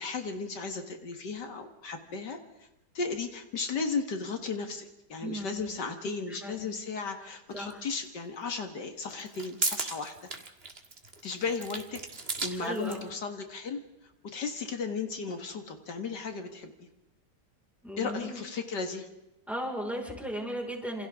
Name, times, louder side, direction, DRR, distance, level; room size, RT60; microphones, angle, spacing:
voice 1, 0.0-2.7 2.9-10.1 11.2-12.0 12.4-13.8 14.2-16.7 18.0-19.1, left 4 dB, 75° left, 5 dB, 2.2 m, -35 dB
voice 2, 5.2-5.7 6.3-6.7 7.5-7.8 12.6-13.0 17.8-18.4 19.5-21.1, equal, ahead, 0 dB, 4.9 m, -36 dB
sound 1, 7.7-7.8 9.1-13.1, right 3 dB, 35° right, 2.0 m, -36 dB
28.0 x 27.5 x 3.7 m, 0.92 s
omnidirectional pair, 1.9 m